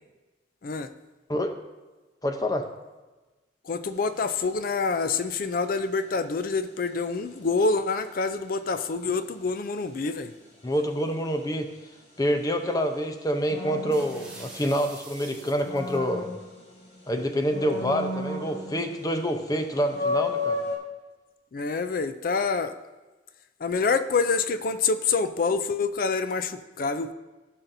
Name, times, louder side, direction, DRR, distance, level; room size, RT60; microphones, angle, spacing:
voice 1, 2.2-2.7 10.6-11.7 12.2-16.3 17.1-20.6, equal, 20° left, 6 dB, 0.7 m, -27 dB
voice 2, 3.6-10.3 21.5-22.7 23.6-27.1, left 4 dB, 50° left, 11 dB, 0.4 m, -26 dB
sound 1, 3.8-4.2 13.5-14.9 15.3-17.0 17.5-19.1 19.4-19.5 19.9-20.8, left 2 dB, 90° left, 2.2 m, -32 dB
sound 2, 13.9-16.0, right 2 dB, 5° right, 1.7 m, -45 dB
16.0 x 5.8 x 2.7 m, 1.2 s
head